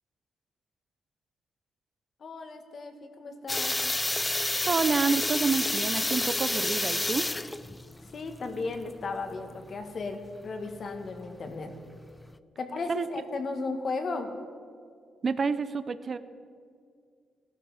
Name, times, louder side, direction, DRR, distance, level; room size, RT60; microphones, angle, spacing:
voice 1, 2.2-3.8 8.1-11.7 12.6-14.3, left 3 dB, 45° left, 6 dB, 1.7 m, -35 dB
sound 1, 3.5-12.3, left 2 dB, 15° left, 0.4 m, -30 dB
voice 2, 4.7-7.3 12.9-13.1 15.2-16.2, right 5 dB, 40° right, 13 dB, 0.6 m, -28 dB
17.5 x 12.5 x 4.9 m, 2.2 s
cardioid pair, 125°, 0 cm